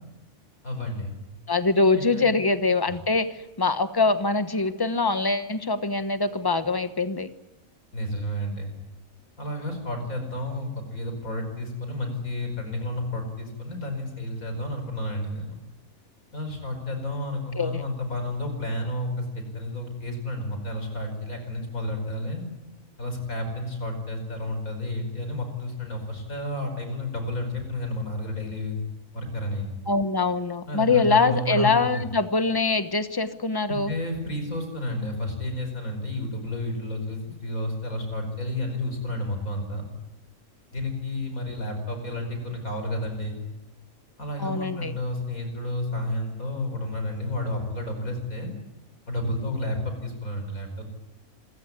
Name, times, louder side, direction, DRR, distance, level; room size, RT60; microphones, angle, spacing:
voice 1, 0.6-1.1 1.9-2.3 7.9-8.7 9.4-15.6 16.3-22.4 23.0-28.8 29.1-29.7 30.7-32.0 33.7-39.9 40.7-43.4 44.2-48.5 49.1-50.9, left 1 dB, 75° left, 5 dB, 5.7 m, -31 dB
voice 2, 1.5-7.3 17.6-17.8 29.9-33.9 44.4-44.9, left 3 dB, 15° left, 11 dB, 1.1 m, -23 dB
27.0 x 15.5 x 9.8 m, 1.0 s
omnidirectional pair, 1.5 m